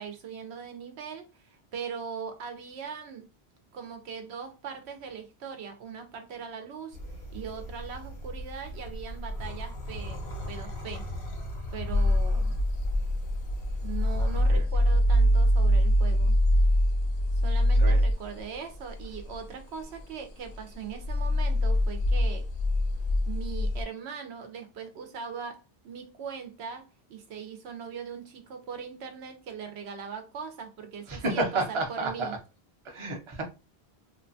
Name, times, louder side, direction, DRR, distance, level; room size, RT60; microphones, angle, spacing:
voice 1, 0.0-3.3 3.7-7.0 7.3-10.2 10.5-11.1 11.7-12.5 13.8-16.3 17.4-22.5 23.3-31.4 31.9-32.3, right 6 dB, 85° right, 0.9 m, -40 dB
sound 1, 6.9-14.4, equal, 85° left, 1.1 m, -38 dB
sound 2, 11.9-18.5 18.9-19.4 20.0-20.1 20.5-23.8, equal, 65° left, 0.7 m, -24 dB
voice 2, 31.1-32.4 32.8-33.4, right 2 dB, 35° right, 0.6 m, -31 dB
2.6 x 2.2 x 2.5 m
omnidirectional pair, 1.1 m